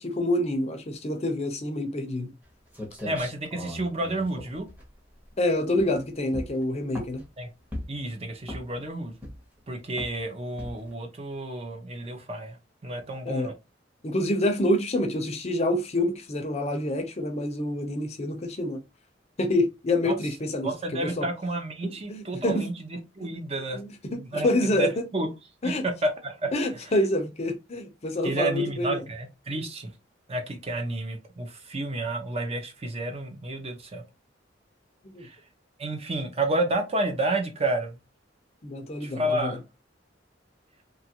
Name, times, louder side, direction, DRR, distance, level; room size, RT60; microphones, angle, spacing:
voice 1, 0.0-2.3 5.4-7.2 13.3-13.5 14.0-18.8 19.4-21.2 21.8-22.7 23.2-23.3 23.7-24.9 25.6-25.8 26.5-29.0 35.0-35.3 38.6-39.6, left 1 dB, 35° left, 0.6 m, -27 dB
sound 1, 2.4-2.5 2.7-5.3 5.7-6.0 6.3-7.3 7.7-8.1 8.4-8.8 9.2-9.6 10.0-10.2 10.6-10.9, left 1 dB, 10° right, 0.9 m, -38 dB
voice 2, 3.1-4.7 7.4-7.5 7.9-9.1 9.7-12.6 12.8-13.5 20.0-20.2 20.6-23.8 24.1-25.3 25.8-26.5 28.2-29.9 30.3-34.0 35.2-35.4 35.8-38.0 39.0-39.6, right 2 dB, 35° right, 0.6 m, -30 dB
2.8 x 2.4 x 2.8 m
head